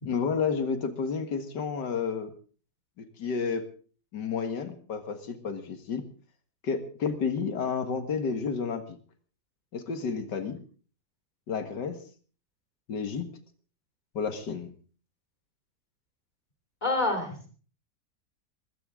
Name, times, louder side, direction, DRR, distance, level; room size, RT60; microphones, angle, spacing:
voice 1, 0.1-2.3 3.0-3.7 4.1-6.1 6.6-9.0 9.7-10.6 11.5-12.0 12.9-13.3 14.1-14.7, left 5 dB, 85° left, 9 dB, 2.3 m, -31 dB
voice 2, 16.8-17.5, left 2 dB, 25° left, 5 dB, 3.6 m, -28 dB
20.0 x 16.0 x 3.8 m, 0.40 s
omnidirectional pair, 1.8 m